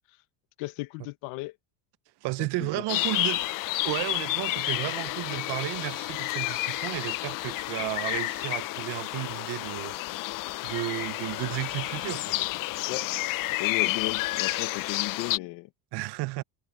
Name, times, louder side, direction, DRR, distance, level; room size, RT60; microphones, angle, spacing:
voice 1, 0.6-1.5 2.4-2.8 12.9-13.1 13.6-15.7, left 21 dB, 75° left, 1.3 m, -35 dB
voice 2, 2.2-3.4 3.8-9.9 10.6-12.4 15.9-16.4, right 20 dB, 55° right, 0.6 m, -33 dB
sound 1, 2.9-15.4, left 19 dB, 45° left, 0.5 m, -30 dB
cardioid pair, 125°, 50 cm